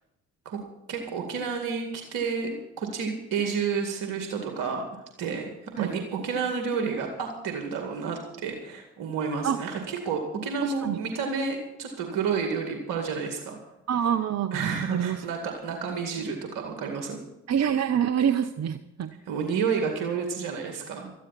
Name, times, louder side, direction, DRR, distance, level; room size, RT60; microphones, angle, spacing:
voice 1, 0.9-4.8 5.2-13.6 14.5-17.2 19.3-21.1, right 5 dB, 70° right, 3 dB, 2.2 m, -30 dB
voice 2, 10.6-11.0 13.9-15.2 17.5-19.1, right 9 dB, 50° right, 12 dB, 0.9 m, -26 dB
19.0 x 13.5 x 4.2 m, 0.90 s
hypercardioid pair, 40°, 34 cm